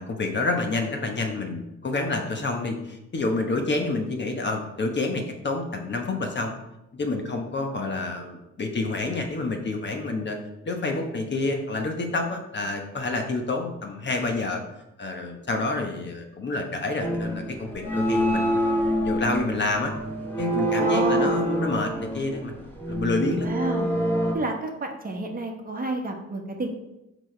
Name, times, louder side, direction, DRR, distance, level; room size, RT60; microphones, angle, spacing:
voice 1, 0.0-6.5 6.9-10.4 10.6-14.6 15.0-19.9 20.4-23.5, left 3 dB, 35° left, 4 dB, 1.1 m, -28 dB
sound 1, 17.0-24.3, equal, 5° left, 1.9 m, -26 dB
voice 2, 20.7-21.4 23.4-23.9 24.3-26.7, right 2 dB, 30° right, 2 dB, 1.2 m, -29 dB
6.0 x 5.0 x 4.4 m, 0.92 s
cardioid pair, 90°, 30 cm